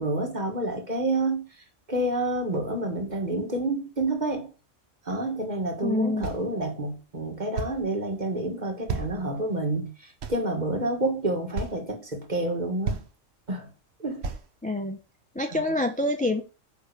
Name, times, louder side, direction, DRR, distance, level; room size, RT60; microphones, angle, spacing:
voice 1, 0.0-1.4 1.9-4.5 5.1-13.0 13.5-13.7 14.0-14.3 15.5-15.6, right 2 dB, 35° right, 1.9 m, -29 dB
voice 2, 5.8-6.2 14.6-15.0 15.3-16.4, left 2 dB, 10° left, 0.6 m, -26 dB
sound 1, 6.2-6.5 7.6-7.9 8.9-9.6 10.2-10.9 11.6-11.8 12.5-12.6 12.9-13.1 14.2-14.5, right 4 dB, 60° right, 1.1 m, -32 dB
9.6 x 3.2 x 6.7 m
omnidirectional pair, 1.3 m